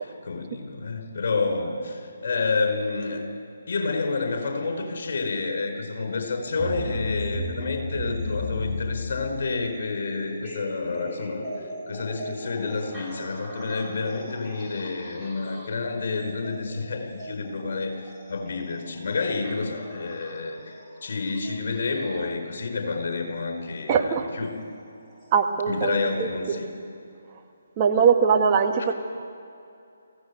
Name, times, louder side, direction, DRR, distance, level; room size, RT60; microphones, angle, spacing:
voice 1, 0.0-3.3 3.7-24.5 25.7-26.7, left 4 dB, 55° left, 4 dB, 4.8 m, -29 dB
sound 1, 6.4-22.4 23.6-23.7 24.5-24.6 25.2-25.3, left 1 dB, ahead, 5.0 m, -37 dB
voice 2, 23.9-24.3 25.3-26.6 27.8-28.9, right 6 dB, 30° right, 4 dB, 1.7 m, -21 dB
24.0 x 17.0 x 8.2 m, 2.6 s
figure-of-eight pair, 145°, 0 cm